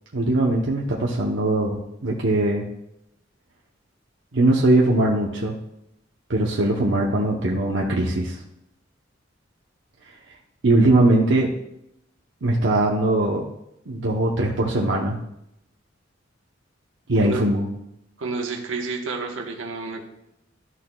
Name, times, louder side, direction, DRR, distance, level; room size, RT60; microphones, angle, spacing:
voice 1, 0.1-2.6 4.3-5.6 6.3-8.4 10.6-11.5 12.4-13.4 13.9-15.2 17.1-17.6, right 2 dB, 70° right, -2 dB, 0.9 m, -20 dB
voice 2, 18.2-20.0, right 3 dB, 85° right, 1 dB, 1.3 m, -29 dB
12.5 x 6.3 x 2.3 m, 0.83 s
head